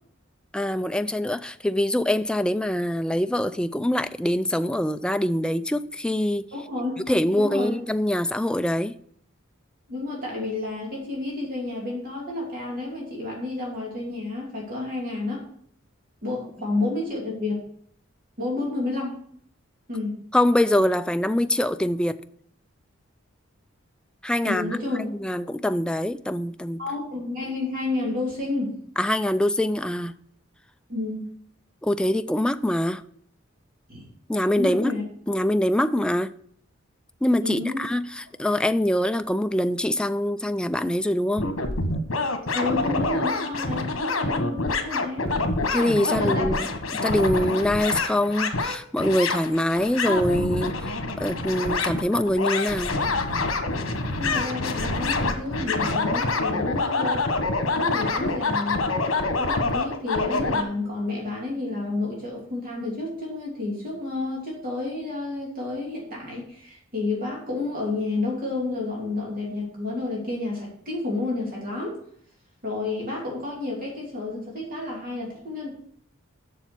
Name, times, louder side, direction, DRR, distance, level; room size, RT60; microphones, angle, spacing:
voice 1, 0.5-6.4 7.1-8.9 20.3-22.2 24.2-26.8 29.0-30.1 31.8-33.0 34.3-34.9 35.3-36.3 37.2-41.5 45.7-46.7 47.0-50.9 51.2-53.0, left 1 dB, 5° left, 0.3 m, -24 dB
voice 2, 6.5-6.9 7.3-7.8 9.9-15.4 16.2-17.6 18.4-19.2 19.9-20.1 24.4-25.0 26.8-28.8 30.9-31.3 33.9-34.1 34.6-35.0 37.4-37.8 42.5-45.5 46.0-46.5 54.2-57.2 57.7-58.9 59.4-72.0 72.6-75.7, left 2 dB, 45° right, 2.8 m, -30 dB
sound 1, 41.4-60.6, left 3 dB, 85° left, 1.3 m, -26 dB
7.1 x 6.8 x 6.0 m
head